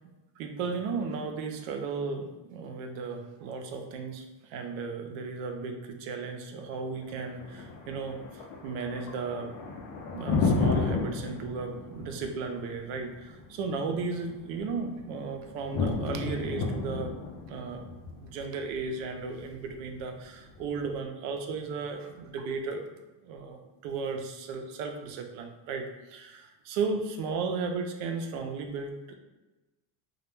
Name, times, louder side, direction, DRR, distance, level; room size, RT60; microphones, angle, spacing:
voice 1, 0.4-9.5 9.8-17.1 17.5-17.8 18.2-22.8 23.2-29.2, right 4 dB, 80° right, 4 dB, 0.5 m, -35 dB
Thunder, 6.9-20.9, left 4 dB, 75° left, 0.6 m, -33 dB
2.2 x 2.1 x 3.1 m, 1.1 s
cardioid pair, 180°, 47 cm